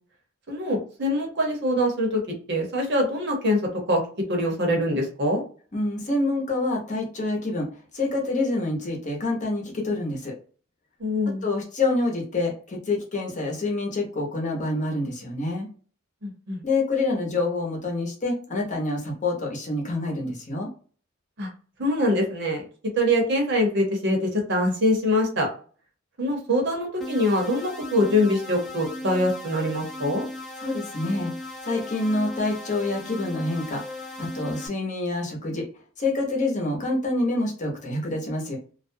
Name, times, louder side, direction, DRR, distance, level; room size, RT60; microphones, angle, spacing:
voice 1, 0.5-2.2 2.5-3.6 3.9-4.0 4.3-5.4 11.0-11.4 16.2-16.6 21.4-21.5 21.8-22.6 23.0-25.5 26.2-30.2, left 1 dB, 60° right, 1 dB, 0.9 m, -24 dB
voice 2, 5.7-7.7 7.9-10.3 11.4-15.7 16.6-20.7 30.6-31.3 31.6-35.7 36.0-38.6, left 2 dB, 40° left, -1 dB, 0.8 m, -27 dB
sound 1, 27.0-34.7, left 1 dB, ahead, 0.6 m, -37 dB
2.4 x 2.1 x 2.6 m, 0.40 s
head